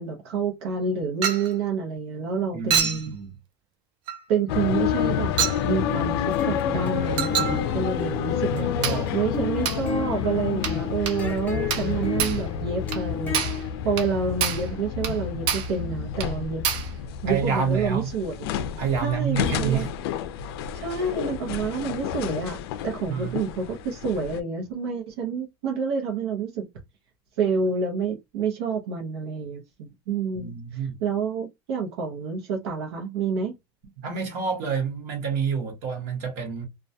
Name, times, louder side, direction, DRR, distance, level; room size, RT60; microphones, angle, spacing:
voice 1, 0.0-3.1 4.3-5.3 5.6-8.7 9.1-16.6 17.2-18.5 19.0-19.9 20.7-26.7 27.4-33.5, right 5 dB, 85° right, 0.7 m, -28 dB
Chink clink, 1.2-1.5 2.7-3.1 4.1-4.2 5.4-5.6 7.2-7.6 8.8-9.1 9.7-9.9 10.6-10.8 11.1-11.2 11.7-11.9 12.2-12.4 12.9-13.0 13.3-13.6 14.0-14.1 14.4-14.7 15.0-15.2 15.5-15.8 16.2-16.3 16.6-16.9, right 8 dB, 40° right, 0.4 m, -26 dB
voice 2, 2.5-3.3 8.5-9.3 17.3-18.1 18.8-19.9 23.1-23.3 30.3-31.0 34.0-36.7, right 6 dB, 55° right, 0.9 m, -28 dB
sound 1, 4.5-24.4, left 9 dB, 80° left, 0.4 m, -29 dB
sound 2, 5.7-13.7, left 5 dB, 15° left, 0.6 m, -34 dB
2.2 x 2.2 x 2.6 m
supercardioid pair, 170°, 13 cm